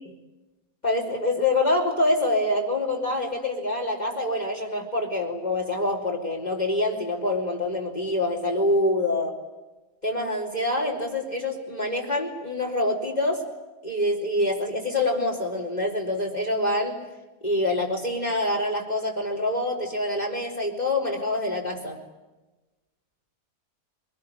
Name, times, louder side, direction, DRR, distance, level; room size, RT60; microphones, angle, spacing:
voice 1, 0.8-9.4 10.0-13.4 13.8-17.0 17.4-22.0, left 1 dB, 25° left, 0 dB, 4.5 m, -26 dB
24.0 x 21.0 x 9.8 m, 1.1 s
omnidirectional pair, 1.7 m